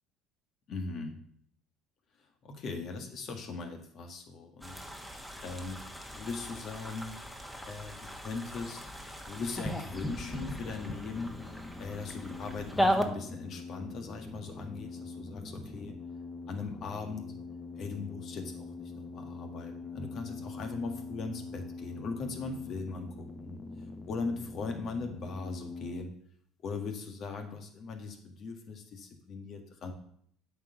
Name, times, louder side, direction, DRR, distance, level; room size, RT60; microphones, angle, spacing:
voice 1, 0.7-1.2 2.4-4.8 5.4-5.8 6.1-7.2 7.6-8.8 9.3-11.3 11.8-15.9 16.5-17.3 17.7-23.6 24.1-26.1 26.6-29.9, left 4 dB, 55° left, 5 dB, 1.8 m, -39 dB
sound 1, 4.6-13.0, equal, 5° left, 1.4 m, -36 dB
sound 2, 9.9-26.0, left 3 dB, 30° left, 0.9 m, -44 dB
8.6 x 4.7 x 6.9 m, 0.65 s
hypercardioid pair, 70°, 0 cm